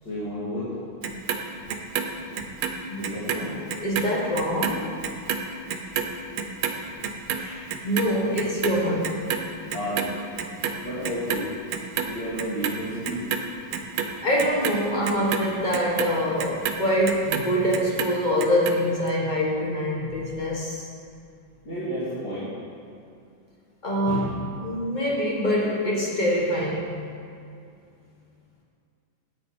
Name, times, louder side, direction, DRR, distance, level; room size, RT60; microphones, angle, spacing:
voice 1, 0.0-0.7 3.0-3.5 9.7-10.1 10.8-11.5 12.0-13.2 21.6-22.5, equal, 55° left, -11 dB, 3.3 m, -31 dB
Clock, 1.0-3.4 3.7-10.1 10.4-11.4 11.7-12.7 13.0-17.5 17.7-18.7 19.1-19.2, right 7 dB, 90° right, 1.7 m, -29 dB
voice 2, 3.8-4.9 7.4-9.2 14.2-20.8 23.8-27.1, equal, 25° left, -3 dB, 1.6 m, -25 dB
13.0 x 8.9 x 4.3 m, 2.4 s
omnidirectional pair, 2.3 m